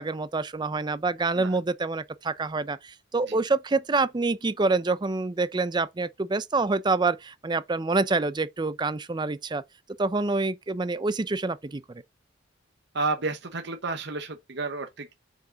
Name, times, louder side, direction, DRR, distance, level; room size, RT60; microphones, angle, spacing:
voice 1, 0.0-9.6 10.0-12.0, right 3 dB, 20° right, 0.5 m, -27 dB
voice 2, 12.9-15.1, right 3 dB, 60° right, 1.0 m, -31 dB
6.4 x 4.9 x 4.5 m
head